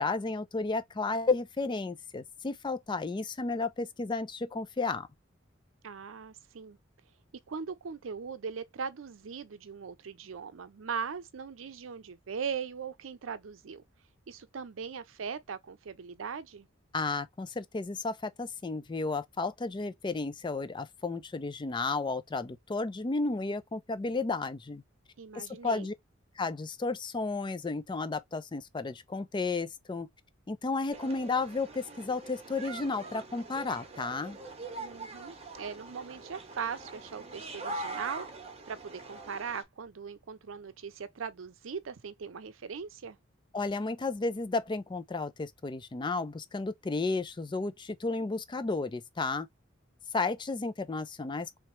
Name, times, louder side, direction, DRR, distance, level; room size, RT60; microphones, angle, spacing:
voice 1, 0.0-5.1 16.9-24.8 25.3-25.9 26.4-30.1 30.5-34.4 43.5-49.5 50.1-51.5, left 3 dB, 25° left, 0.4 m, -33 dB
voice 2, 5.8-6.8 7.5-13.8 14.3-16.7 25.2-25.9 34.8-38.3 38.7-43.2, right 6 dB, 85° right, 0.5 m, -39 dB
sound 1, 30.9-39.6, right 3 dB, 30° right, 0.9 m, -43 dB
3.2 x 3.0 x 3.0 m
head